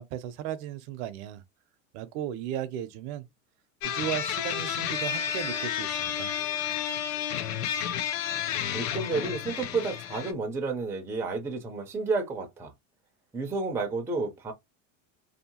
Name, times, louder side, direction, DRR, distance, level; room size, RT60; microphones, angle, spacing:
voice 1, 0.0-1.4 1.9-3.3 3.8-6.3, right 10 dB, 60° right, 0.6 m, -35 dB
sound 1, 3.8-10.3, left 9 dB, 85° left, 0.6 m, -31 dB
voice 2, 8.7-12.7 13.3-14.5, right 3 dB, 5° right, 0.4 m, -31 dB
2.7 x 2.1 x 2.8 m
supercardioid pair, 140°, 39 cm